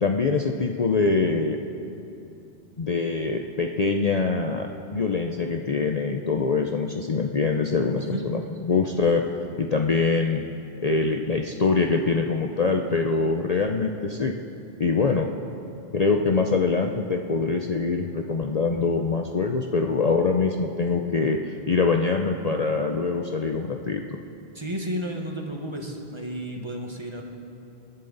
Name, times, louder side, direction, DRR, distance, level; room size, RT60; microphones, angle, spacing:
voice 1, 0.0-1.6 2.8-9.2 9.6-10.4 10.8-14.3 14.8-15.3 15.9-24.0, left 4 dB, 40° left, 3 dB, 0.7 m, -24 dB
voice 2, 8.0-8.3 24.5-27.2, equal, 25° right, 2 dB, 1.4 m, -32 dB
27.0 x 11.0 x 4.0 m, 2.8 s
omnidirectional pair, 1.1 m